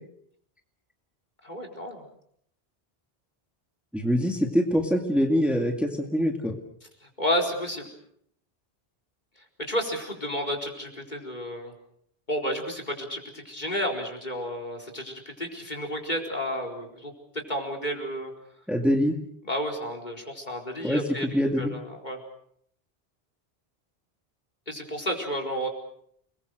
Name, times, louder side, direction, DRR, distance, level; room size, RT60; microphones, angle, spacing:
voice 1, 1.4-2.0 7.2-7.9 9.6-11.7 12.3-18.3 19.4-21.3 21.6-22.2 24.7-25.7, equal, 45° left, 4 dB, 4.7 m, -31 dB
voice 2, 3.9-6.6 18.7-19.2 20.8-21.0 21.3-21.7, equal, ahead, 3 dB, 2.1 m, -24 dB
29.5 x 21.5 x 6.5 m, 0.68 s
omnidirectional pair, 1.0 m